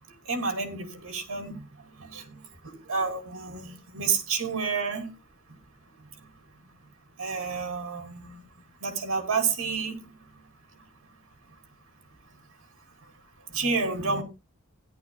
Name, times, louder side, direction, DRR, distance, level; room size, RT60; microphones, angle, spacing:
voice 1, 0.3-1.6 2.0-2.4 2.6-5.1 7.2-8.3 8.8-9.9 13.5-14.2, right 5 dB, 65° right, 2.7 m, -29 dB
16.5 x 11.0 x 2.3 m
head